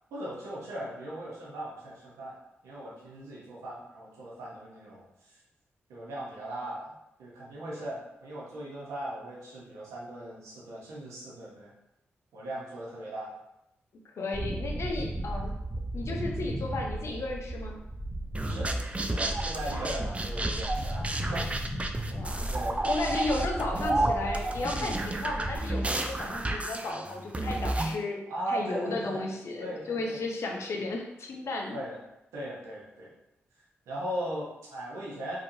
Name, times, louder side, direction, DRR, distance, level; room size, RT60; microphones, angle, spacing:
voice 1, 0.1-2.4 2.6-5.1 5.9-6.9 7.2-11.7 12.3-13.3 18.5-18.8 19.1-21.0 21.3-21.5 22.5-22.8 28.3-29.2 29.6-30.2 31.7-32.0 32.3-33.1 33.9-35.4, right 1 dB, 90° right, -5 dB, 0.9 m, -38 dB
voice 2, 14.2-15.5 15.9-17.8 22.1-22.5 22.8-28.2 28.5-31.8, left 2 dB, 65° left, 1 dB, 0.6 m, -34 dB
sound 1, 14.3-25.6, right 1 dB, ahead, 0.9 m, -35 dB
sound 2, 18.3-28.0, right 2 dB, 25° right, 0.4 m, -31 dB
3.1 x 2.8 x 2.6 m, 0.87 s
supercardioid pair, 40°, 5 cm